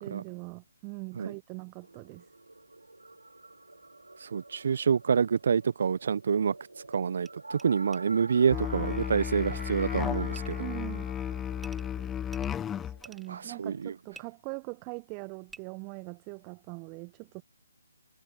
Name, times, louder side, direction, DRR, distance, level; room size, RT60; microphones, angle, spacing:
voice 1, 0.0-2.3 10.6-11.1 12.8-17.4, right 34 dB, 20° right, 1.0 m, -42 dB
sound 1, 1.8-13.9, right 2 dB, 80° right, 4.5 m, -47 dB
voice 2, 4.2-6.5 6.9-10.7 13.3-13.9, right 6 dB, 50° right, 1.1 m, -27 dB
sound 2, 6.9-7.0 7.2-7.3 7.6-7.7 7.9-8.0 10.4-10.6 11.6-11.9 12.3-13.3 14.1-14.2 15.5-15.6, right 4 dB, 5° right, 2.6 m, -50 dB
Musical instrument, 8.5-13.0, left 9 dB, 10° left, 0.5 m, -33 dB
figure-of-eight pair, 145°, 0 cm